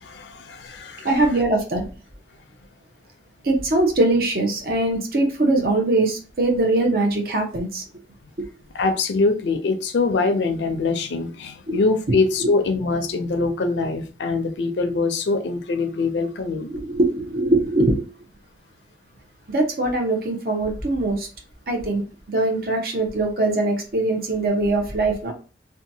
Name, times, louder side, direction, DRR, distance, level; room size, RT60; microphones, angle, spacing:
voice 1, 0.0-1.1 8.7-16.7, left 3 dB, 85° left, 0.5 m, -23 dB
voice 2, 1.0-1.9 3.4-7.8 8.4-8.5 11.7-11.8 16.7-18.0 19.5-21.3 21.7-22.0 22.3-25.3, right 2 dB, 55° right, 0.7 m, -21 dB
2.8 x 2.3 x 2.7 m
head